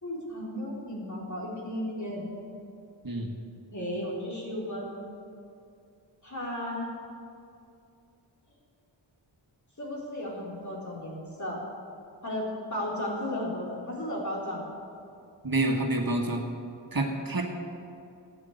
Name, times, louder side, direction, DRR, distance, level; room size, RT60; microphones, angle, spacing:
voice 1, 0.0-2.3 3.7-4.9 6.2-6.9 9.8-11.6 12.2-14.6, left 1 dB, 40° left, -4 dB, 3.8 m, -34 dB
voice 2, 15.4-16.5 16.9-17.4, right 2 dB, 50° right, 1 dB, 1.6 m, -27 dB
13.5 x 9.0 x 7.9 m, 2.5 s
wide cardioid pair, 80°, 45 cm